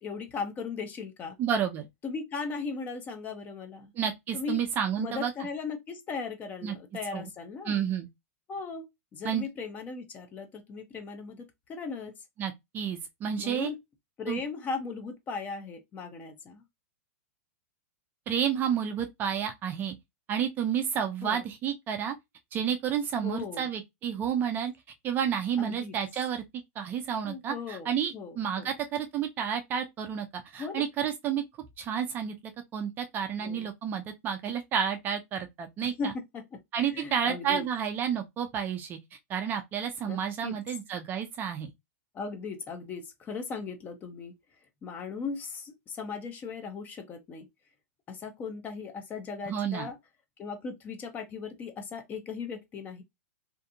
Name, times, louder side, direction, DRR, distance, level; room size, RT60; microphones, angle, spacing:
voice 1, 0.0-1.4 2.0-3.9 4.3-4.6 5.0-7.8 8.5-12.1 13.4-13.8 14.2-16.6 21.2-21.4 23.2-23.7 25.6-26.0 27.3-28.7 30.6-30.8 33.4-33.7 35.8-37.7 40.0-40.6 42.1-44.4 44.8-47.5 48.1-50.0 50.4-53.0, left 5 dB, 20° left, 0.6 m, -38 dB
voice 2, 1.4-1.9 4.0-5.3 6.6-6.8 7.1-7.3 7.7-8.1 9.2-9.4 12.4-13.7 14.3-14.4 18.3-20.0 20.3-22.2 22.5-24.7 25.0-26.4 26.8-31.4 31.8-32.4 32.7-36.1 36.7-39.0 39.3-41.7 49.5-49.9, right 8 dB, 25° right, 0.3 m, -30 dB
2.5 x 2.3 x 2.7 m
hypercardioid pair, 145°, 8 cm